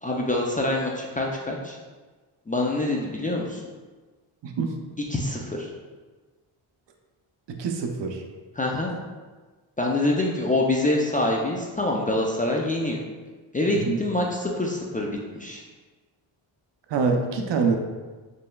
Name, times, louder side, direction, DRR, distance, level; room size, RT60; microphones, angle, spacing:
voice 1, 0.0-1.8 2.5-3.6 5.1-5.7 8.6-8.9 9.8-13.0 13.5-15.6, left 2 dB, 20° left, -1 dB, 0.4 m, -25 dB
voice 2, 7.5-8.2 13.8-14.0 16.9-17.8, right 5 dB, 60° right, 4 dB, 0.6 m, -25 dB
4.3 x 3.2 x 2.2 m, 1.3 s
cardioid pair, 70°, 49 cm